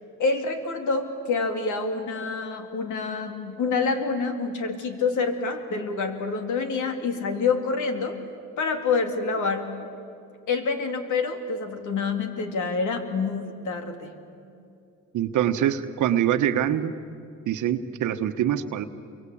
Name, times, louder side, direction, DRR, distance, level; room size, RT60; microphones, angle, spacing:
voice 1, 0.2-8.2 8.6-9.7 10.5-14.1, left 4 dB, 80° left, 6 dB, 3.0 m, -27 dB
voice 2, 15.1-16.9 17.5-18.8, right 10 dB, 80° right, 8 dB, 1.2 m, -24 dB
28.5 x 24.0 x 8.6 m, 2.5 s
cardioid pair, 90°, 30 cm